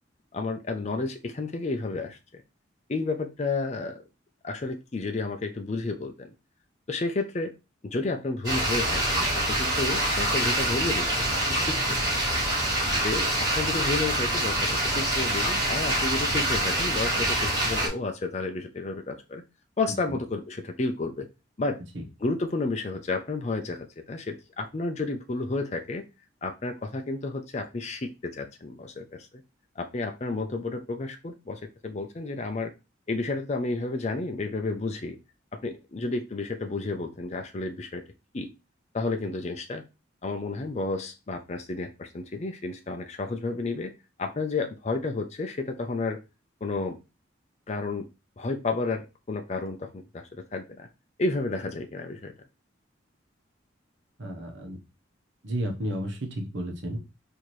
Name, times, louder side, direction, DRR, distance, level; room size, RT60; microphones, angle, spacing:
voice 1, 0.3-2.4 2.9-4.0 4.4-6.3 6.9-7.5 7.8-12.1 12.9-19.4 19.8-21.3 21.6-21.8 22.2-26.0 26.4-29.3 29.8-32.7 33.1-35.2 35.5-38.0 38.3-38.5 38.9-39.8 40.2-43.9 44.2-46.2 46.6-47.0 47.7-48.1 48.4-50.9 51.2-52.3, left 3 dB, 35° left, 5 dB, 0.4 m, -31 dB
sound 1, 8.4-17.9, right 1 dB, 20° right, 2.4 m, -26 dB
voice 2, 54.2-54.8 55.4-57.0, equal, 70° right, 2 dB, 0.9 m, -32 dB
4.2 x 2.8 x 3.1 m, 0.27 s
head